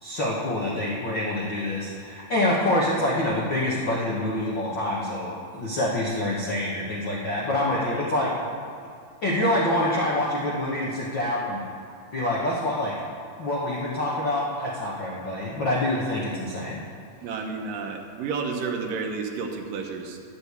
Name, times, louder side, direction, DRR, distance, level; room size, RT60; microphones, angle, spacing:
voice 1, 0.0-8.3 9.2-11.6 12.1-12.9 13.4-16.8, left 1 dB, 60° left, -5 dB, 1.2 m, -26 dB
voice 2, 17.2-20.2, right 5 dB, 70° right, 3 dB, 2.6 m, -31 dB
11.5 x 7.9 x 8.2 m, 2.3 s
omnidirectional pair, 4.2 m